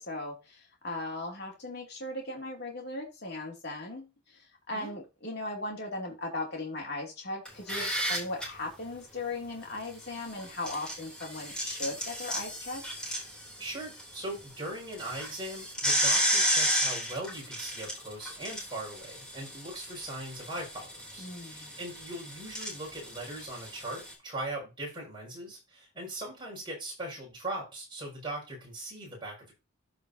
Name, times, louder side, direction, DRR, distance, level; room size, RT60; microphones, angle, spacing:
voice 1, 0.0-12.8 21.2-21.8, left 2 dB, 50° left, 1 dB, 2.6 m, -38 dB
sound 1, 7.5-8.4 10.4-14.0 14.4-14.5 14.9-24.1, equal, 5° left, 3.0 m, -32 dB
voice 2, 13.6-29.5, right 1 dB, 20° right, -3 dB, 5.6 m, -40 dB
13.5 x 4.9 x 2.7 m, 0.27 s
head